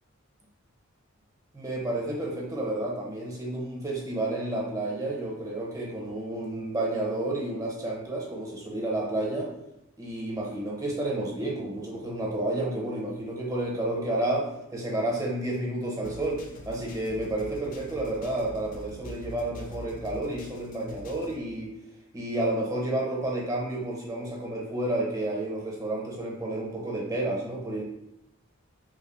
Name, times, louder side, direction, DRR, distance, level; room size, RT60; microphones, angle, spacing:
voice 1, 1.5-9.5 10.0-21.7 22.1-27.8, right 1 dB, 15° right, -2 dB, 0.6 m, -31 dB
sound 1, 16.0-21.4, left 1 dB, 40° left, 0.4 m, -44 dB
3.0 x 2.4 x 4.1 m, 0.85 s
head